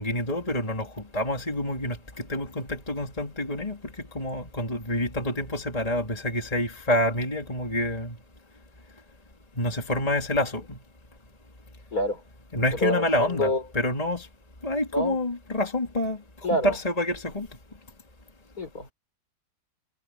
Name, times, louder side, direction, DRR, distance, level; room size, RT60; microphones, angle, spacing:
voice 1, 0.0-2.0 2.3-8.2 9.6-10.8 12.5-14.3 14.6-16.2 16.6-17.5, left 1 dB, 20° left, 3.3 m, -27 dB
voice 2, 11.9-12.2 12.7-13.6 14.9-15.2 16.4-16.8 18.6-18.9, left 1 dB, 60° left, 6.8 m, -27 dB
omnidirectional pair, 1.8 m